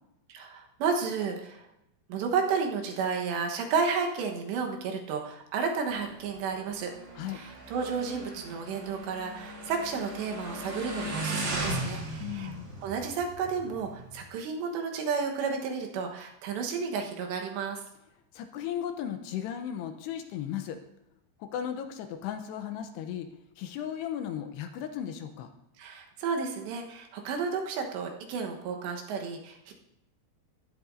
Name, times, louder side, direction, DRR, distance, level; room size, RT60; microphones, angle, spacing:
voice 1, 0.3-1.6 2.1-6.9 7.3-12.5 12.8-17.8 25.8-29.7, right 5 dB, 80° right, 2 dB, 3.4 m, -32 dB
Motorcycle, 5.9-14.2, right 1 dB, 60° right, 4.2 m, -37 dB
voice 2, 12.2-12.7 18.3-20.8 21.4-23.3 23.6-25.5, left 9 dB, 80° left, 6 dB, 2.8 m, -36 dB
15.0 x 11.5 x 2.6 m, 0.85 s
omnidirectional pair, 5.0 m